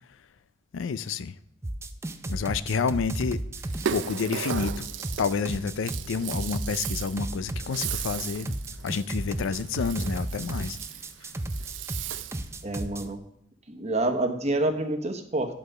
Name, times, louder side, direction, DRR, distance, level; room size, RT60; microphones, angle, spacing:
voice 1, 0.7-1.3 2.3-3.4 3.9-4.9 5.2-8.6 8.8-10.8, left 5 dB, 85° left, 0.4 m, -29 dB
sound 1, 1.6-13.0, right 1 dB, 15° right, 0.4 m, -34 dB
Rattle (instrument), 3.6-12.6, right 8 dB, 75° right, 0.5 m, -36 dB
voice 2, 12.6-13.2 13.7-15.5, right 2 dB, 35° right, 1.0 m, -27 dB
10.5 x 4.9 x 6.5 m
head